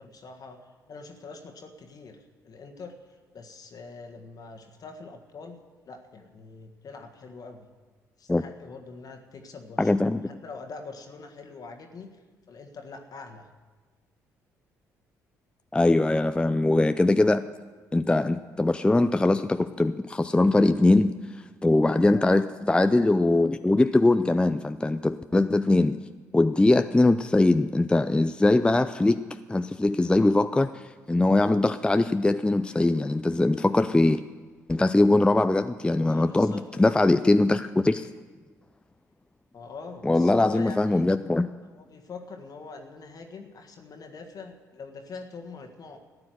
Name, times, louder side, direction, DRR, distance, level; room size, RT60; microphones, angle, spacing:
voice 1, 0.0-7.7 8.2-13.5 22.0-22.3 35.9-37.0 38.0-38.1 39.5-41.0 41.7-46.0, left 4 dB, 50° left, 4 dB, 1.6 m, -44 dB
voice 2, 9.8-10.3 15.7-17.5 17.9-21.2 21.6-26.0 26.3-29.2 29.5-34.2 34.7-38.1 40.0-41.5, left 2 dB, 10° left, 11 dB, 0.5 m, -22 dB
14.0 x 9.7 x 7.8 m, 1.4 s
hypercardioid pair, 45°, 8 cm